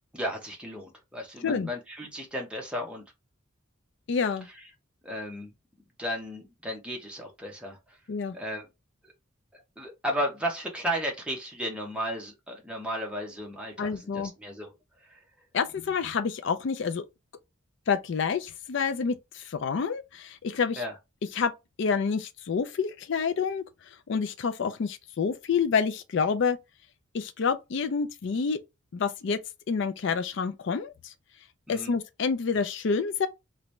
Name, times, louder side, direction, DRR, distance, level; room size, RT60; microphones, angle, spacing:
voice 1, 0.1-3.0 5.0-5.5 6.0-8.0 8.3-8.7 9.5-14.7 15.0-15.2 20.8-20.9 31.7-31.9, equal, 5° right, 0.9 m, -34 dB
voice 2, 4.1-4.5 8.1-8.4 13.8-14.3 15.5-17.1 17.9-20.8 21.3-21.5 21.8-26.6 27.1-28.6 28.9-29.4 29.7-31.1 31.7-33.3, left 5 dB, 60° left, 0.4 m, -28 dB
3.0 x 2.6 x 3.2 m
head